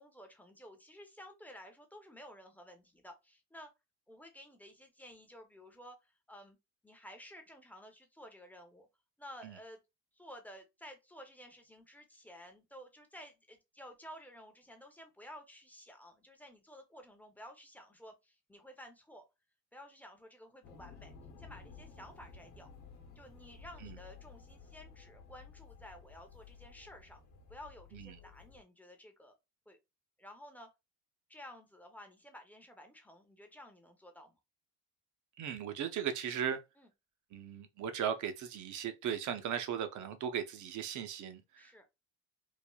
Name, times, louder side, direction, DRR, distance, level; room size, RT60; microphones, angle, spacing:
voice 1, 0.0-3.7 4.1-6.6 6.8-8.9 9.2-9.8 10.1-19.2 19.7-22.7 23.2-27.2 27.5-29.3 29.7-29.8 30.2-30.7 31.3-34.4 36.8-36.9 41.6-41.9, equal, 5° left, 0.6 m, -53 dB
sound 1, 20.6-28.6, left 5 dB, 55° left, 0.9 m, -54 dB
voice 2, 35.4-36.6 37.3-41.9, right 8 dB, 45° right, 0.6 m, -37 dB
3.1 x 2.0 x 2.2 m
supercardioid pair, 90°, 40 cm